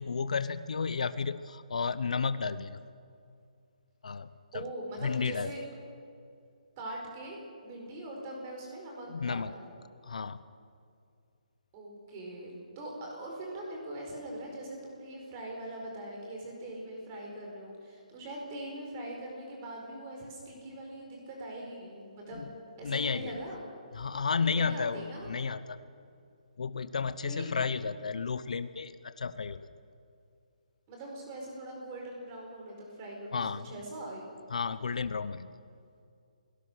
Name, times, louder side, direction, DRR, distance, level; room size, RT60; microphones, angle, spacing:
voice 1, 0.0-2.8 4.0-4.3 4.5-4.6 5.0-5.5 9.1-9.5 10.1-10.4 22.4-22.5 22.8-23.3 23.9-25.8 26.6-29.7 33.3-33.7 34.5-35.5, left 5 dB, 60° left, 14 dB, 0.9 m, -32 dB
voice 2, 4.5-5.6 6.8-9.6 11.7-22.5 22.8-23.6 24.5-25.3 27.2-27.5 30.9-34.2, right 1 dB, 20° right, -1 dB, 4.8 m, -42 dB
28.0 x 18.0 x 6.4 m, 2.4 s
hypercardioid pair, 175°, 4 cm